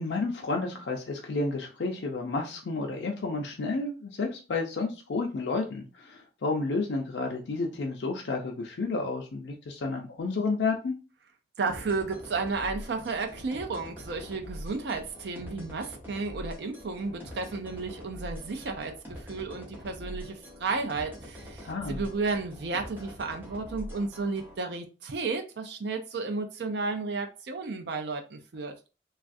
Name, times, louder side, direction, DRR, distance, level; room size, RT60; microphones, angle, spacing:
voice 1, 0.0-10.9 21.6-22.0, left 3 dB, 90° left, 0.5 m, -31 dB
voice 2, 11.6-28.7, right 4 dB, 75° right, 0.4 m, -33 dB
sound 1, 11.7-24.5, equal, 10° right, 0.9 m, -44 dB
3.1 x 2.4 x 2.5 m
head